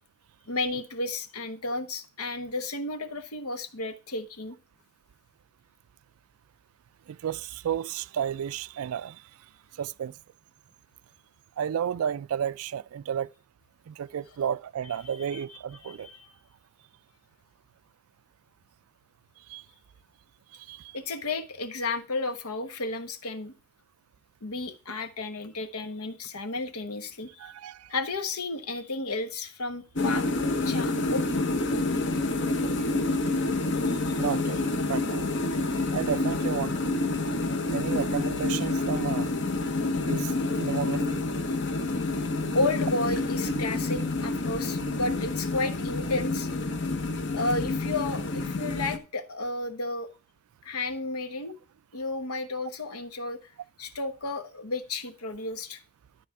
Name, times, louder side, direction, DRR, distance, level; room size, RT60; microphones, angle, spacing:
voice 1, 0.5-4.6 15.2-16.3 20.9-23.5 24.4-27.5 27.9-30.2 30.6-31.3 33.9-34.0 42.5-46.5 47.3-50.1 50.6-51.6 51.9-53.5 53.8-55.8, left 2 dB, 85° left, 1.1 m, -32 dB
voice 2, 7.1-9.2 9.8-10.2 11.6-13.3 13.9-16.1 19.5-19.6 20.5-21.0 27.4-27.9 34.2-35.2 35.8-36.9 37.7-39.3 40.0-40.3 40.6-41.2, right 8 dB, 75° right, 0.3 m, -32 dB
sound 1, 30.0-49.0, left 2 dB, 55° left, 0.9 m, -28 dB
12.5 x 4.2 x 4.7 m
head